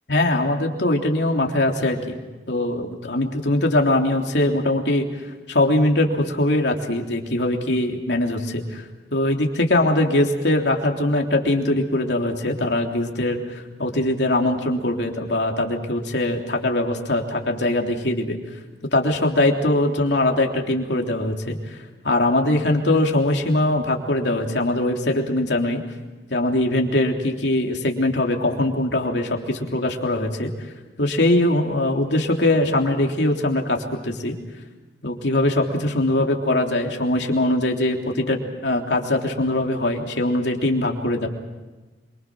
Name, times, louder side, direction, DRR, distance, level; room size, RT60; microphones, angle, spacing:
voice 1, 0.1-2.2 2.5-5.1 5.5-8.8 9.1-18.4 18.9-21.8 22.0-25.8 26.3-30.5 31.0-34.3 35.0-41.3, left 1 dB, 70° left, 2 dB, 3.4 m, -22 dB
27.5 x 24.5 x 6.3 m, 1.2 s
head